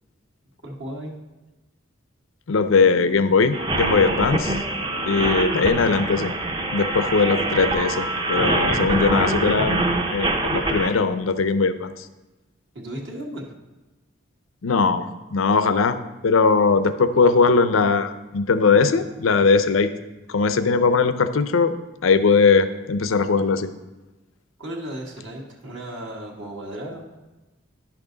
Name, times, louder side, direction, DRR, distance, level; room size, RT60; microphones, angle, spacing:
voice 1, 0.6-1.1 12.7-13.5 24.6-27.2, right 1 dB, 65° right, -1 dB, 1.6 m, -35 dB
voice 2, 2.5-4.6 5.1-6.3 6.7-12.1 14.6-15.0 15.3-16.0 16.2-19.9 20.3-21.7 22.0-23.7, left 4 dB, 80° left, 11 dB, 0.5 m, -20 dB
sound 1, 3.5-10.9, right 2 dB, 25° right, 0.6 m, -24 dB
10.5 x 6.0 x 3.9 m, 1.1 s
head